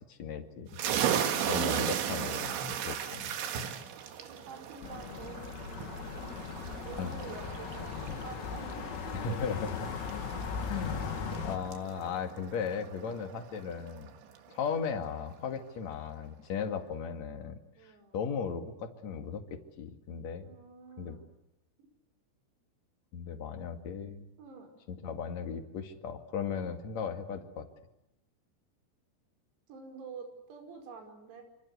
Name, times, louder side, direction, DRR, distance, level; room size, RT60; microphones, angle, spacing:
voice 1, 0.1-0.8 1.5-3.3 7.0-7.1 9.1-9.8 10.7-11.1 11.4-14.1 14.5-20.5 21.0-21.2 23.1-24.3 24.9-27.7, left 6 dB, 45° left, 6 dB, 2.4 m, -37 dB
sound 1, 0.7-14.1, right 9 dB, 65° right, 4.0 m, -36 dB
voice 2, 4.2-9.7 17.7-18.2 20.4-21.3 21.8-21.9 24.4-24.7 29.7-31.4, right 5 dB, 85° right, 4 dB, 7.9 m, -48 dB
sound 2, 4.8-11.6, left 6 dB, 90° left, 5.8 m, -38 dB
27.0 x 26.5 x 8.3 m, 0.86 s
omnidirectional pair, 6.0 m